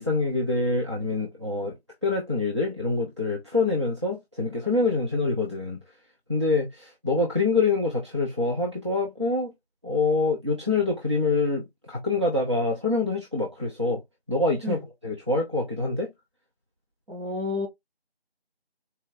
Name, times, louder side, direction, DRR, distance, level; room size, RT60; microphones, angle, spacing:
voice 1, 0.0-1.8 2.0-5.8 6.3-9.5 9.8-14.0 14.3-16.1, left 3 dB, 30° right, 0.8 m, -25 dB
voice 2, 17.1-17.7, left 3 dB, 60° right, 1.9 m, -30 dB
4.3 x 3.1 x 3.9 m
figure-of-eight pair, 175°, 31 cm